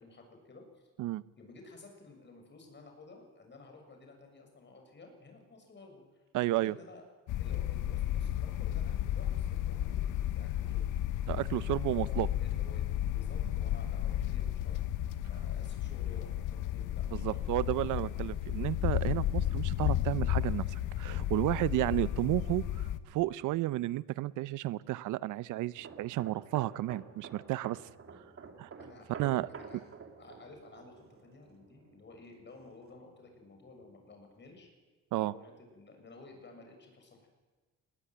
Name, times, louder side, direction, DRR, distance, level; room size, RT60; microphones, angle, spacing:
voice 1, 0.0-0.9 1.4-7.0 7.4-10.9 12.1-14.9 15.2-17.4 28.8-29.2 29.5-29.9 30.2-34.7 35.1-37.3, left 3 dB, 35° left, 3 dB, 7.0 m, -54 dB
voice 2, 6.3-6.7 11.3-12.3 17.1-22.6 23.1-27.8 28.6-28.7 29.2-29.5 35.1-35.3, right 16 dB, 85° right, 19 dB, 0.6 m, -32 dB
sound 1, 7.3-23.0, left 12 dB, 85° left, 1.0 m, -33 dB
sound 2, 25.7-33.2 33.5-33.8, right 5 dB, 45° right, 2.9 m, -50 dB
20.0 x 18.5 x 9.3 m, 1.3 s
cardioid pair, 90°, 30 cm